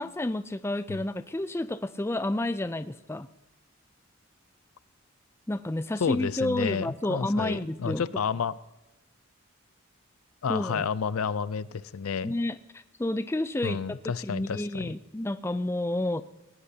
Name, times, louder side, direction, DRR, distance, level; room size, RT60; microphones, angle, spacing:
voice 1, 0.0-3.3 5.5-8.0 10.5-10.8 12.2-13.8 14.2-16.2, left 1 dB, 10° left, 12 dB, 0.4 m, -30 dB
voice 2, 6.0-8.6 10.4-12.3 13.6-14.9, left 6 dB, 85° left, 17 dB, 0.5 m, -30 dB
18.5 x 18.0 x 2.8 m, 1.1 s
head